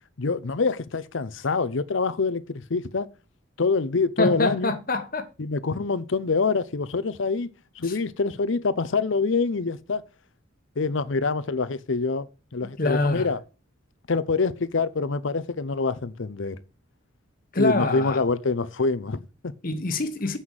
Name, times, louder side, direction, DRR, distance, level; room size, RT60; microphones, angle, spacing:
voice 1, 0.2-3.1 3.6-4.7 5.4-7.5 7.8-10.0 10.8-12.3 12.5-13.4 14.1-16.6 17.6-19.5, left 4 dB, 70° left, 0.7 m, -25 dB
voice 2, 4.2-5.2 7.8-8.0 12.8-13.3 17.5-18.2 19.6-20.4, left 2 dB, 45° left, 1.2 m, -25 dB
7.9 x 5.6 x 6.3 m
head